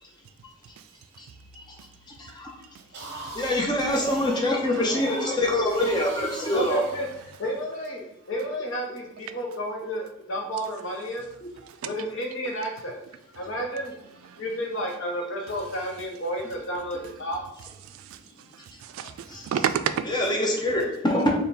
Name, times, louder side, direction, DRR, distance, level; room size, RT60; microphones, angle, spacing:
voice 1, 2.2-2.5 3.1-6.8 19.3-19.5 20.1-21.3, left 1 dB, 20° left, 0.6 m, -25 dB
sound 1, 2.8-7.5, right 2 dB, 55° right, 0.7 m, -40 dB
voice 2, 6.5-7.1 7.4-11.3 11.8-13.0 13.4-13.9 14.4-17.4, equal, 70° left, 0.8 m, -31 dB
voice 3, 14.2-14.8 15.5-15.6 17.8-20.1, right 8 dB, 90° right, 0.3 m, -32 dB
3.4 x 2.2 x 4.0 m
head